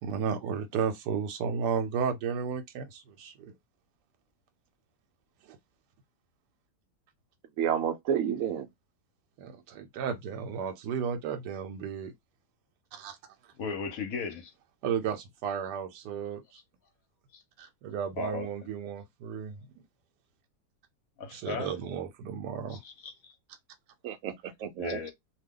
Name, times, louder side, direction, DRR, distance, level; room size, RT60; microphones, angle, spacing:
voice 1, 0.0-3.5 5.4-5.6 9.4-12.1 12.9-13.2 14.8-16.4 17.6-19.6 21.3-22.8, right 7 dB, 90° right, 1.2 m, -33 dB
voice 2, 7.6-8.7 24.0-25.1, right 8 dB, 65° right, 0.8 m, -30 dB
voice 3, 13.6-14.5 17.3-17.4 18.2-18.5 21.2-21.8 22.7-23.3 24.8-25.1, left 5 dB, 65° left, 1.1 m, -36 dB
2.7 x 2.2 x 3.5 m
omnidirectional pair, 1.7 m